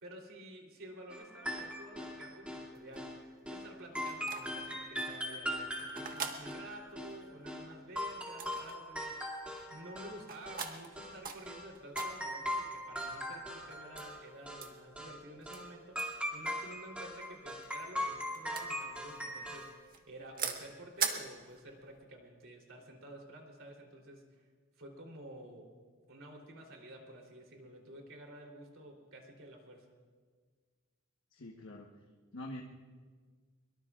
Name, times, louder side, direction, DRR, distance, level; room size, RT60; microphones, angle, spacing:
voice 1, 0.0-3.1 3.5-16.0 16.3-24.5 24.8-25.7 26.1-29.9, right 1 dB, 65° right, 1 dB, 3.5 m, -51 dB
sound 1, 1.1-2.7 3.0-3.2 3.5-3.7 4.0-7.7 8.0-10.2 10.5-11.2 11.5-11.7 12.0-14.2 14.5-14.7 15.0-15.2 15.5-15.7 16.0-19.8, equal, 5° right, 2.5 m, -40 dB
sound 2, 2.7-22.0, right 6 dB, 45° right, 1.5 m, -44 dB
voice 2, 31.3-31.9 32.3-32.6, left 1 dB, 65° left, 0 dB, 1.3 m, -44 dB
23.5 x 23.0 x 2.5 m, 1.6 s
head